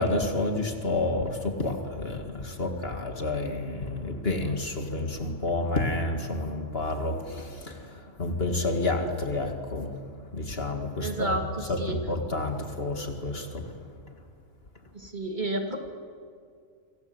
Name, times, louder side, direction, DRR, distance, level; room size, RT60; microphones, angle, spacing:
voice 1, 0.0-10.0 10.3-11.4 11.7-13.7, left 2 dB, 45° left, 5 dB, 2.3 m, -29 dB
voice 2, 11.0-12.0 14.9-15.9, right 2 dB, 35° right, 4 dB, 2.6 m, -31 dB
27.0 x 26.0 x 8.0 m, 2.2 s
omnidirectional pair, 1.4 m